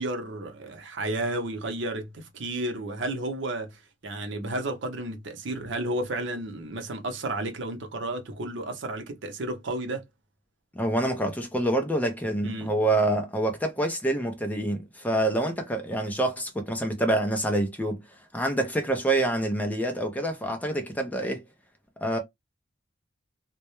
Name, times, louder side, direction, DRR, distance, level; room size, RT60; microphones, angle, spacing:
voice 1, 0.0-10.0 12.4-12.7, right 1 dB, 65° right, 0.6 m, -32 dB
voice 2, 10.7-18.0 18.3-21.5 22.0-22.2, right 1 dB, 10° left, 0.4 m, -26 dB
2.2 x 2.0 x 2.9 m
head